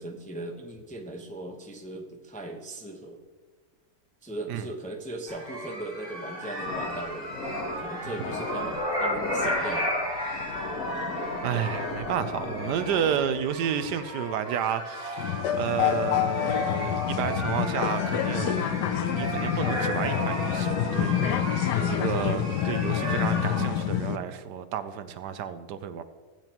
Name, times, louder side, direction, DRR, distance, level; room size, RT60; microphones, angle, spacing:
voice 1, 0.0-3.2 4.2-7.3 7.8-10.1 21.7-22.4, right 2 dB, 5° left, 0.6 m, -38 dB
sound 1, 5.3-23.7, equal, 20° right, 3.8 m, -34 dB
sound 2, 6.6-13.4, left 3 dB, 60° left, 1.6 m, -37 dB
voice 2, 11.4-18.7 18.9-26.0, right 8 dB, 75° right, 1.2 m, -31 dB
sound 3, 15.2-24.2, left 10 dB, 80° left, 1.2 m, -27 dB
16.0 x 8.9 x 3.0 m
omnidirectional pair, 1.8 m